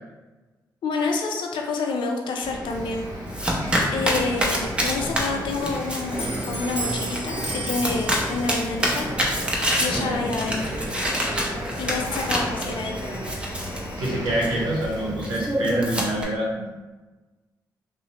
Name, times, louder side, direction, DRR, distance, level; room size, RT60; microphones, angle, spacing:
voice 1, 0.8-3.1 3.9-9.1 9.8-10.8 11.8-13.0, left 4 dB, 75° left, 2 dB, 0.4 m, -28 dB
sound 1, 2.4-15.1, equal, 45° right, 0.8 m, -34 dB
Domestic sounds home sounds, 2.7-16.2, equal, 15° right, 0.7 m, -28 dB
Clock, 4.6-13.7, right 2 dB, 30° left, 0.9 m, -37 dB
voice 2, 14.0-16.6, right 1 dB, 85° right, -4 dB, 0.7 m, -26 dB
2.7 x 2.0 x 2.8 m, 1.2 s
supercardioid pair, 50°, 8 cm